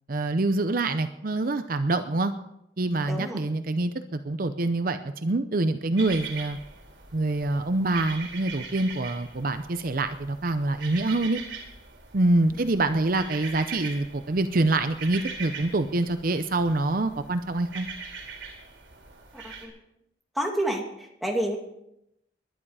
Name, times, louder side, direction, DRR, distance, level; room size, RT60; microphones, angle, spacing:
voice 1, 0.1-2.3 2.8-6.6 7.1-11.4 12.1-17.9, right 2 dB, 50° right, 9 dB, 0.7 m, -25 dB
voice 2, 3.0-3.4 12.5-12.7 19.3-19.7 20.3-21.6, right 1 dB, ahead, 0 dB, 2.3 m, -30 dB
sound 1, 6.0-19.7, right 5 dB, 85° right, 4.4 m, -41 dB
20.0 x 11.5 x 4.9 m, 0.83 s
head